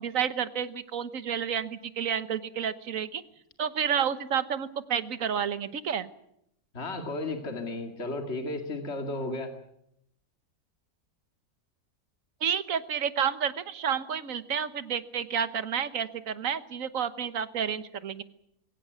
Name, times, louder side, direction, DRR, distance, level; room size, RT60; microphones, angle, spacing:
voice 1, 0.0-3.2 3.6-6.1 12.4-18.2, right 8 dB, 65° right, 13 dB, 1.5 m, -30 dB
voice 2, 6.7-9.5, left 2 dB, 45° left, 4 dB, 2.5 m, -34 dB
22.0 x 17.5 x 9.5 m, 0.77 s
omnidirectional pair, 1.5 m